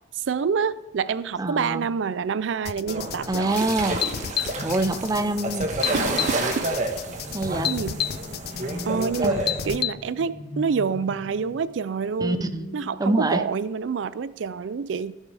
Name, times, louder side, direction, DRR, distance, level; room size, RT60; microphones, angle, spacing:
voice 1, 0.1-3.6 5.9-6.7 7.7-8.0 8.8-12.5 12.7-15.1, right 6 dB, 85° right, 16 dB, 0.4 m, -27 dB
voice 2, 1.4-1.9 3.3-4.0 4.6-5.7 7.3-7.7 9.2-9.4 12.2-12.7 13.0-13.4, right 2 dB, 20° right, 9 dB, 0.6 m, -25 dB
sound 1, 2.7-9.9, left 10 dB, 60° left, 0.4 m, -30 dB
sound 2, 2.9-9.8, right 2 dB, 40° right, 1.3 m, -29 dB
sound 3, 4.6-5.6 7.2-13.7, left 1 dB, 80° left, 1.7 m, -40 dB
16.0 x 7.4 x 3.4 m, 1.1 s
head